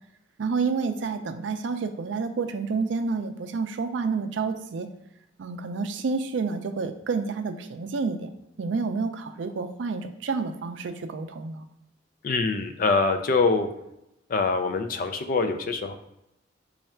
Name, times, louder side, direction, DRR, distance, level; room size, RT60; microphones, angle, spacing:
voice 1, 0.4-4.9 5.4-8.3 8.6-11.6, right 4 dB, 70° right, 8 dB, 0.4 m, -29 dB
voice 2, 12.2-13.7 14.3-15.9, left 4 dB, 45° left, 7 dB, 0.4 m, -24 dB
3.2 x 2.3 x 4.3 m, 0.87 s
head